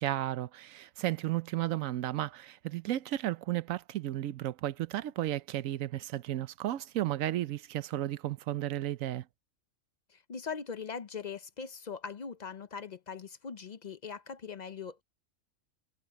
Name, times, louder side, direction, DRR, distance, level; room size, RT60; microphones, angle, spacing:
voice 1, 0.0-9.3, right 14 dB, 80° right, 1.0 m, -33 dB
voice 2, 10.1-15.0, left 6 dB, 45° left, 0.6 m, -41 dB
omnidirectional pair, 1.4 m